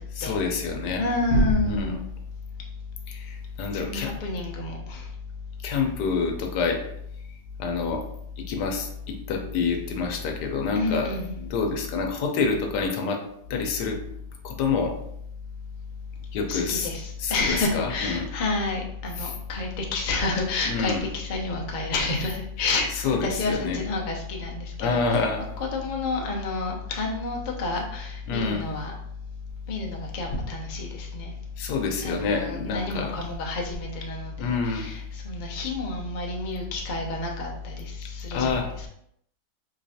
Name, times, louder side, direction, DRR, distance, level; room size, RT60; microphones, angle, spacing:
voice 1, 0.2-1.0 1.7-1.9 3.1-4.1 5.6-6.8 7.6-8.0 8.4-11.2 11.5-13.2 13.5-14.0 14.4-14.9 16.3-16.9 17.2-18.3 19.2-19.3 20.7-21.0 23.0-23.8 24.8-25.4 28.3-28.6 31.6-33.1 34.4-34.9 38.3-38.7, left 4 dB, 75° left, 3 dB, 1.2 m, -27 dB
voice 2, 1.0-2.0 3.7-5.0 10.7-11.4 16.5-25.2 25.6-28.9 29.7-31.3 32.0-38.9, left 2 dB, 90° left, 0 dB, 0.4 m, -29 dB
3.8 x 3.1 x 2.7 m, 0.73 s
omnidirectional pair, 1.9 m